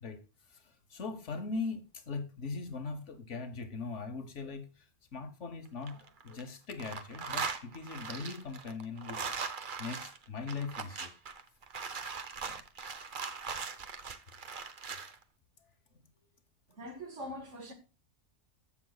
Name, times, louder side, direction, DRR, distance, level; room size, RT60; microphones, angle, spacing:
voice 1, 0.0-6.0 6.2-9.4 9.8-11.1 12.4-12.6 15.6-15.7, left 4 dB, 70° left, 1.4 m, -40 dB
sound 1, 5.7-6.4 6.7-15.1, right 5 dB, 45° right, 1.0 m, -40 dB
voice 2, 16.7-17.7, equal, 70° right, 2.2 m, -43 dB
14.5 x 6.2 x 2.3 m
omnidirectional pair, 1.3 m